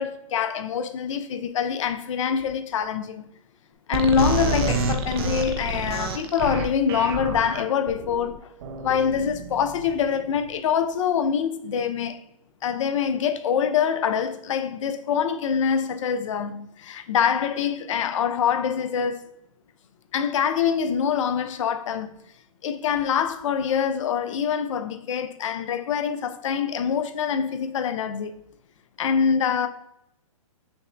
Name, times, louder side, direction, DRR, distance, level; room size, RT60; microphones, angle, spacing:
voice 1, 0.0-3.2 3.9-8.3 8.8-12.2 12.6-19.2 20.1-22.1 22.6-28.3 29.0-29.7, left 7 dB, 60° left, 0.4 m, -25 dB
sound 1, 3.9-10.3, right 3 dB, 45° right, 0.5 m, -29 dB
5.7 x 2.1 x 2.5 m
hypercardioid pair, 135°, 18 cm